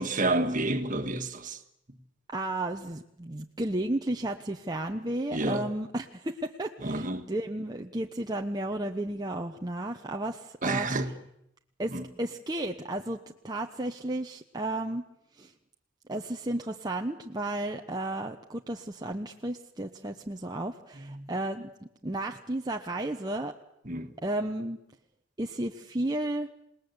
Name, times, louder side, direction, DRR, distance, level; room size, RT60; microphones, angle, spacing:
voice 1, 0.0-1.6 5.3-5.7 6.8-7.3 10.6-11.1 11.9-12.0 21.0-21.3 23.9-24.1, right 2 dB, 40° right, 1.8 m, -29 dB
voice 2, 2.3-10.9 11.8-13.2 13.4-15.1 15.4-15.5 16.1-21.7 22.0-23.5 24.2-24.8 25.4-26.5, right 1 dB, 20° right, 0.9 m, -33 dB
27.5 x 19.5 x 8.1 m
head